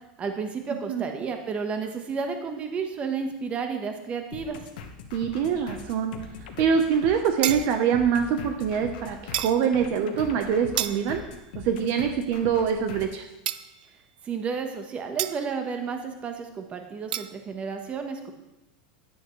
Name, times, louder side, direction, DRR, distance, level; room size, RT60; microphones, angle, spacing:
voice 1, 0.2-4.6 14.2-18.3, right 5 dB, 25° right, 5 dB, 1.2 m, -32 dB
voice 2, 0.7-1.0 5.1-6.1 6.6-11.2 11.6-13.3, right 7 dB, 50° right, 5 dB, 1.0 m, -24 dB
sound 1, 4.3-13.2, left 5 dB, 75° left, 1.3 m, -42 dB
sound 2, 7.4-8.0 9.3-9.6 10.8-11.3 13.5-13.9 15.2-15.5 17.1-17.3, right 12 dB, 75° right, 0.5 m, -31 dB
10.0 x 9.5 x 3.2 m, 0.96 s
supercardioid pair, 130°, 5 cm